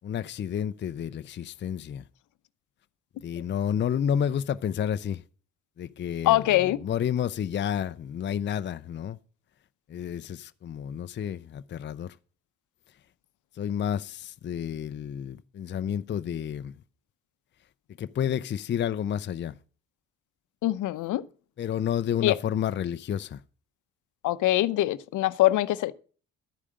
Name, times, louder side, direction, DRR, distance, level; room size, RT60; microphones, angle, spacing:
voice 1, 0.0-2.0 3.2-5.2 5.8-9.2 9.9-12.1 13.6-16.7 18.0-19.6 21.6-23.4, left 9 dB, 40° left, 0.5 m, -30 dB
voice 2, 6.2-6.8 20.6-21.2 22.2-22.4 24.2-25.9, left 15 dB, 80° left, 0.7 m, -23 dB
12.5 x 5.0 x 7.6 m
cardioid pair, 90°, 30 cm